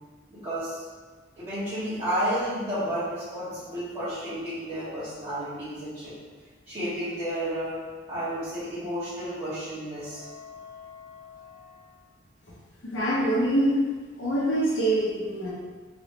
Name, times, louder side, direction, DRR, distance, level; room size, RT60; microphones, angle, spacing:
voice 1, 0.3-0.8 1.4-6.1 6.7-7.8 8.1-11.8, equal, 30° right, -18 dB, 1.4 m, -32 dB
voice 2, 12.8-13.8 14.2-15.5, right 1 dB, 85° left, -7 dB, 0.8 m, -24 dB
3.1 x 2.9 x 3.1 m, 1.4 s
head